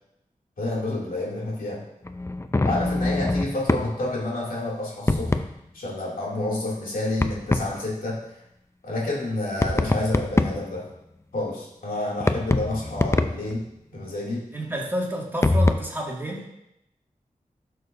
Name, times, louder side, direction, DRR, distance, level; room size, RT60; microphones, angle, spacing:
voice 1, 0.6-1.8 2.6-5.4 5.7-8.2 8.8-10.9 11.3-14.4, left 2 dB, 80° left, -4 dB, 2.6 m, -29 dB
sound 1, 2.1-3.9 5.1-5.5 7.2-7.7 9.6-10.7 12.2-13.5 15.4-15.7, left 2 dB, 20° left, 0.5 m, -23 dB
voice 2, 14.5-16.4, equal, 15° right, -3 dB, 2.1 m, -30 dB
12.0 x 6.4 x 2.6 m, 0.84 s
cardioid pair, 50°, 15 cm